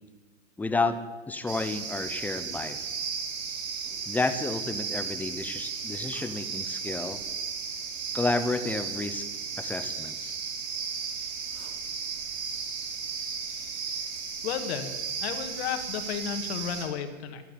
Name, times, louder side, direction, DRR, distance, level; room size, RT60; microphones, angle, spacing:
voice 1, 0.6-1.0 1.3-2.8 4.1-7.2 8.1-9.3 9.6-10.4, left 3 dB, 5° left, 10 dB, 0.6 m, -30 dB
sound 1, 1.5-16.8, right 6 dB, 55° right, 4.8 m, -35 dB
voice 2, 14.4-14.9 15.2-17.4, left 8 dB, 50° left, 7 dB, 2.3 m, -33 dB
14.5 x 12.0 x 8.3 m, 1.2 s
hypercardioid pair, 135°, 40 cm